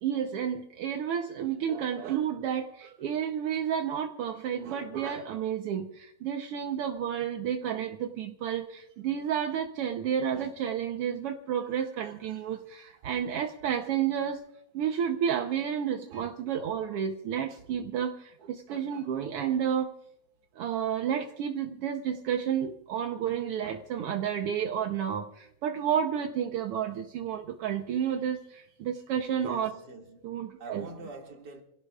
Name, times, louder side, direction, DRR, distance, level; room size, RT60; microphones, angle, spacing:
voice 1, 0.0-14.4 14.7-19.9 20.6-29.7 30.2-30.9, right 8 dB, 65° right, 1.5 m, -31 dB
voice 2, 29.3-31.6, right 2 dB, 35° right, 2.6 m, -45 dB
27.0 x 17.0 x 2.4 m
omnidirectional pair, 3.5 m